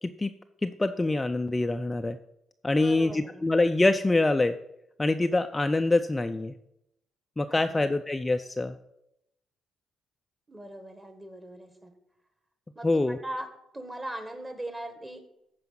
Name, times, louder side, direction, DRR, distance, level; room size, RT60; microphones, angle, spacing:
voice 1, 0.6-2.2 2.6-4.6 5.0-6.6 7.4-8.8 12.8-13.2, left 2 dB, 15° left, 7 dB, 0.4 m, -25 dB
voice 2, 2.8-3.4 7.5-7.9 10.5-11.9 12.7-13.5 13.7-15.3, right 1 dB, 20° right, 7 dB, 1.7 m, -40 dB
13.5 x 4.8 x 5.7 m, 0.82 s
cardioid pair, 90°, 0 cm